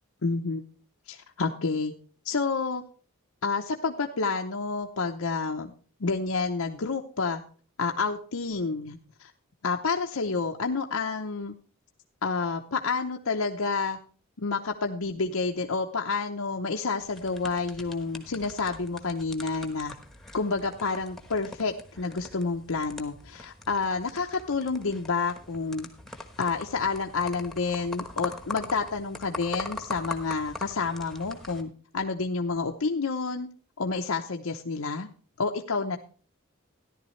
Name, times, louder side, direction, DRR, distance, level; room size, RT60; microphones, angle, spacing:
voice 1, 0.2-0.6 1.1-1.9 2.2-2.8 3.4-5.7 6.0-7.4 7.8-9.3 9.6-11.5 12.2-14.0 14.4-19.9 20.3-25.9 26.4-33.5 33.8-35.1 35.4-36.0, left 4 dB, 70° left, 3 dB, 0.8 m, -29 dB
sound 1, 17.0-31.6, left 3 dB, ahead, 1.1 m, -42 dB
13.5 x 11.0 x 3.2 m, 0.40 s
head